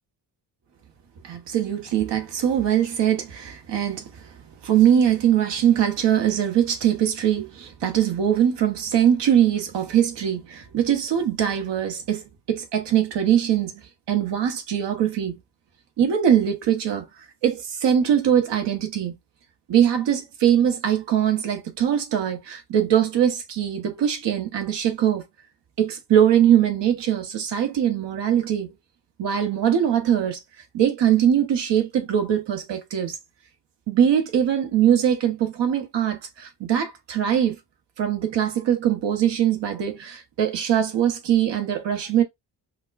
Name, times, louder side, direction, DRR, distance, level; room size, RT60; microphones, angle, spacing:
voice 1, 1.2-4.2 4.6-13.8 14.1-15.4 16.0-19.1 19.7-25.2 25.8-28.7 29.2-30.4 30.7-33.2 33.9-37.6 38.0-42.2, right 9 dB, 75° right, 1.1 m, -22 dB
5.0 x 2.1 x 2.4 m
cardioid pair, 105°, 43 cm